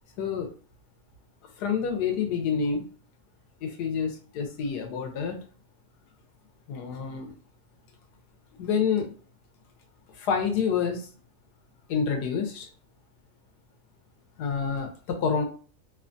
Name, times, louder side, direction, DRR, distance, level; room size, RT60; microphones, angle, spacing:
voice 1, 0.2-0.5 1.6-2.9 3.6-5.4 6.7-7.3 8.6-9.1 10.2-11.1 11.9-12.7 14.4-15.5, left 6 dB, 90° left, 4 dB, 1.3 m, -28 dB
3.0 x 2.2 x 2.5 m, 0.40 s
omnidirectional pair, 1.7 m